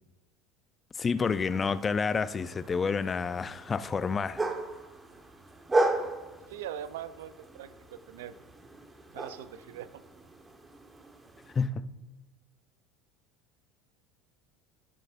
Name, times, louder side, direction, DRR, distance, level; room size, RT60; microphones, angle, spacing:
voice 1, 0.9-4.4 11.5-11.9, left 5 dB, 25° left, 0.5 m, -29 dB
sound 1, 1.2-11.7, right 2 dB, 15° right, 1.3 m, -36 dB
voice 2, 6.5-8.3 9.1-10.0, right 10 dB, 70° right, 0.5 m, -41 dB
17.0 x 7.4 x 2.6 m
hypercardioid pair, 75°, 0 cm